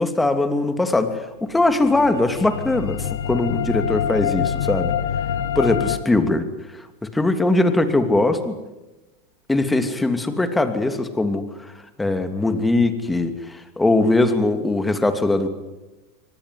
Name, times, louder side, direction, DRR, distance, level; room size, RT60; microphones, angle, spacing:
voice 1, 0.0-4.9 5.5-6.5 7.1-8.5 9.5-11.5 12.0-15.5, left 2 dB, 10° left, 8 dB, 2.9 m, -20 dB
sound 1, 1.6-6.0, left 8 dB, 90° left, 1.6 m, -25 dB
24.5 x 19.0 x 9.5 m, 1.1 s
hypercardioid pair, 110°, 0 cm